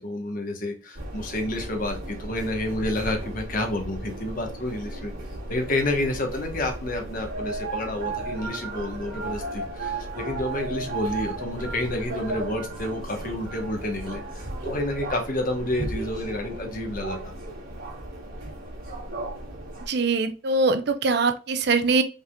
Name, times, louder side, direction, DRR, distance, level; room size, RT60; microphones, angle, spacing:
voice 1, 0.0-5.1 5.5-17.3, left 1 dB, 40° left, 3 dB, 1.0 m, -29 dB
sound 1, 0.9-19.9, right 2 dB, 80° right, 2.3 m, -35 dB
voice 2, 19.9-22.0, right 3 dB, 55° right, 9 dB, 0.5 m, -22 dB
5.4 x 3.6 x 2.2 m, 0.35 s
head